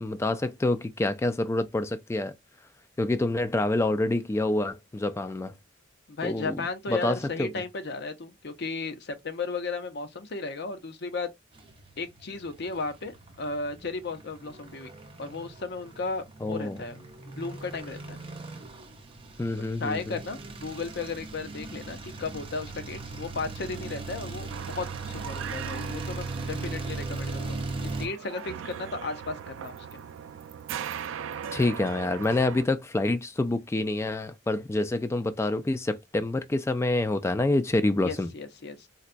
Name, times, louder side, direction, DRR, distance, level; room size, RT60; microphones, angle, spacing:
voice 1, 0.0-2.3 3.0-5.5 6.2-7.5 16.4-16.8 19.4-20.2 31.5-38.3, left 2 dB, 15° left, 0.3 m, -27 dB
voice 2, 6.1-11.3 12.0-14.9 15.2-18.2 19.6-30.0 38.0-38.9, left 3 dB, 60° left, 0.6 m, -35 dB
sound 1, 11.6-28.1, right 3 dB, 30° right, 0.8 m, -39 dB
sound 2, 24.5-32.7, right 8 dB, 85° right, 0.3 m, -39 dB
4.0 x 2.2 x 2.4 m
head